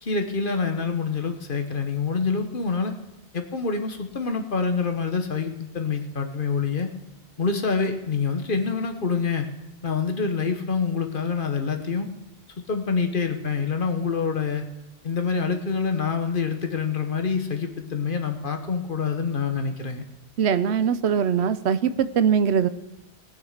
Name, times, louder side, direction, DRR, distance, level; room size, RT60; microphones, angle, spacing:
voice 1, 0.0-2.9 3.3-6.9 7.4-9.5 9.8-12.1 12.7-14.6 15.0-20.0, left 5 dB, 50° left, 6 dB, 1.3 m, -26 dB
voice 2, 20.4-22.7, right 7 dB, 75° right, 13 dB, 1.0 m, -21 dB
19.0 x 6.5 x 6.6 m, 0.98 s
omnidirectional pair, 1.1 m